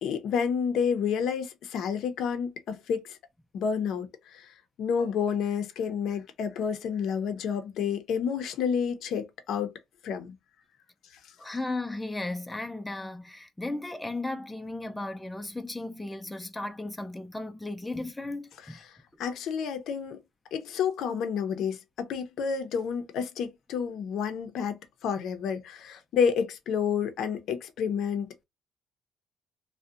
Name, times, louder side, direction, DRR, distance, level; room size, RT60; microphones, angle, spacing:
voice 1, 0.0-3.2 3.5-9.7 10.0-10.3 11.2-11.6 18.9-20.2 20.5-28.4, left 7 dB, 75° left, 0.5 m, -30 dB
voice 2, 11.4-18.8, left 2 dB, 10° left, 0.4 m, -35 dB
2.6 x 2.1 x 2.4 m
cardioid pair, 95°, 0 cm